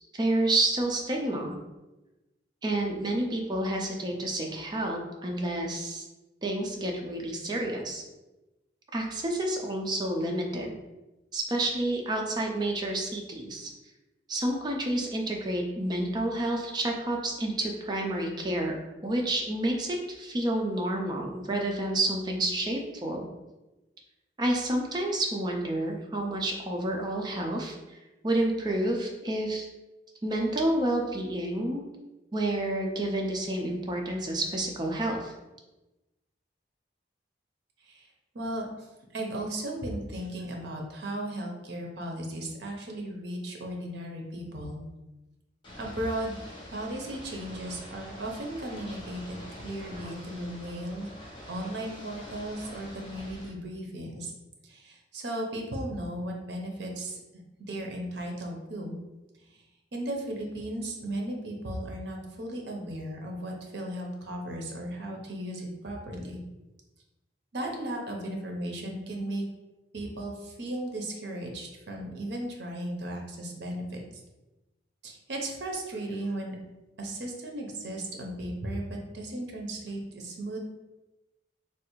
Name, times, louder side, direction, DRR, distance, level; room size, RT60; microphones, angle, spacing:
voice 1, 0.1-1.6 2.6-6.0 6.4-8.0 8.9-10.7 11.3-13.7 14.3-18.8 19.0-23.3 24.4-27.8 28.2-29.7 30.2-31.8 32.3-35.3, right 1 dB, 25° right, 1 dB, 0.4 m, -29 dB
voice 2, 38.3-38.9 39.1-44.8 45.8-46.4 46.7-51.1 51.5-54.3 54.6-57.2 57.6-59.0 59.5-59.6 59.9-66.4 67.5-69.4 69.9-74.0 75.0-76.6 77.0-80.6, right 1 dB, 65° right, 1 dB, 0.6 m, -36 dB
Ocean / Boat Water vehicle, 45.6-53.5, equal, 25° left, 0.7 m, -45 dB
3.3 x 2.4 x 3.0 m, 1.0 s
head